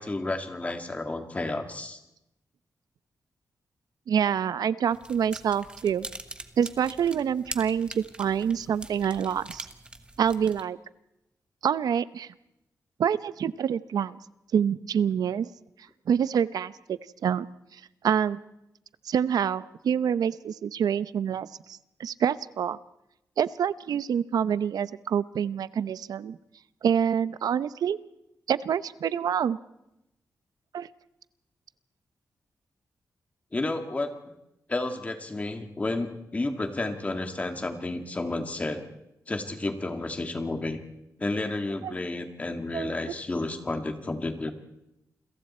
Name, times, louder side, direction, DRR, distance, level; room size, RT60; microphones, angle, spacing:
voice 1, 0.0-2.0 33.5-34.3 34.7-38.8 39.3-40.8 41.2-44.5, left 2 dB, 20° left, 6 dB, 2.1 m, -31 dB
voice 2, 4.1-6.1 6.6-9.7 10.2-10.8 11.6-12.3 13.0-14.2 14.5-15.5 16.1-17.5 17.7-18.4 19.0-22.8 23.4-26.4 26.8-28.0 28.5-29.6 30.7-30.9 41.8-41.9 42.7-43.0, right 8 dB, 90° right, 16 dB, 0.7 m, -26 dB
sound 1, 4.9-10.6, right 2 dB, 15° right, 1.2 m, -43 dB
29.0 x 22.5 x 4.4 m, 0.87 s
wide cardioid pair, 165°, 6 cm